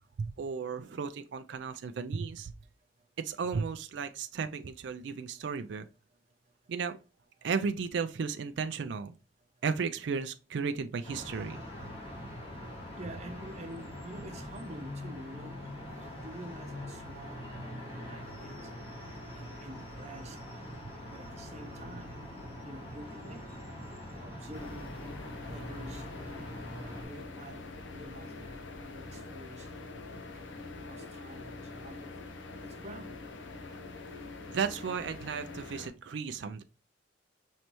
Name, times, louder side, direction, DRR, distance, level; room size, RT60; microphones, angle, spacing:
voice 1, 0.2-2.5 3.2-5.9 6.7-7.0 7.4-9.1 9.6-11.6 34.5-36.6, right 5 dB, 70° right, 0.4 m, -34 dB
sound 1, 11.0-27.1, left 1 dB, 30° left, 2.0 m, -43 dB
voice 2, 13.0-15.5 16.0-18.7 19.3-20.6 21.1-22.1 22.6-23.6 24.1-24.9 25.2-26.1 26.7-27.7 27.9-29.7 30.2-30.5 30.8-32.3 32.6-33.2, right 1 dB, 35° right, 0.7 m, -48 dB
sound 2, 24.5-35.9, left 3 dB, 80° left, 0.8 m, -44 dB
5.3 x 3.2 x 2.9 m
head